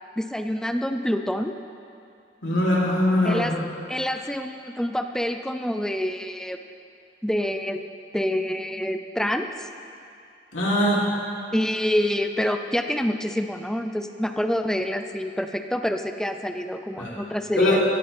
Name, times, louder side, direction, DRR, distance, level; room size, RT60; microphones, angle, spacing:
voice 1, 0.2-1.6 3.2-3.5 3.9-6.6 7.2-7.8 8.1-9.7 11.5-17.8, equal, 5° left, 7 dB, 0.4 m, -27 dB
voice 2, 2.4-3.6 10.5-11.0 17.0-17.1 17.6-17.8, left 1 dB, 90° left, -6 dB, 3.0 m, -22 dB
16.5 x 10.0 x 3.4 m, 2.5 s
head